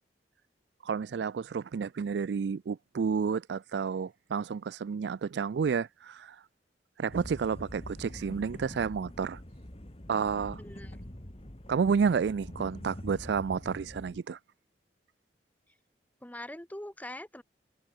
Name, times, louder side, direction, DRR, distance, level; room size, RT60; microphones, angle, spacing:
voice 1, 0.8-6.4 7.0-9.4 10.1-10.6 11.7-14.4, right 6 dB, 70° right, 0.4 m, -30 dB
sound 1, 7.1-14.2, left 1 dB, 35° left, 2.3 m, -45 dB
voice 2, 10.6-11.0 16.2-17.4, left 1 dB, 10° left, 1.5 m, -43 dB
head